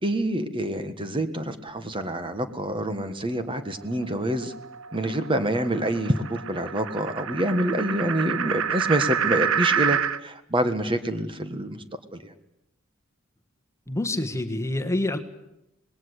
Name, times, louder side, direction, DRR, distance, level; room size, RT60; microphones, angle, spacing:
voice 1, 0.0-4.5 4.9-11.8 12.1-12.3, right 1 dB, 25° right, 9 dB, 1.5 m, -27 dB
sound 1, 3.5-10.2, right 7 dB, 70° right, 0.9 m, -29 dB
voice 2, 13.9-15.2, left 1 dB, 15° left, 7 dB, 1.5 m, -27 dB
26.0 x 20.0 x 8.1 m, 0.87 s
head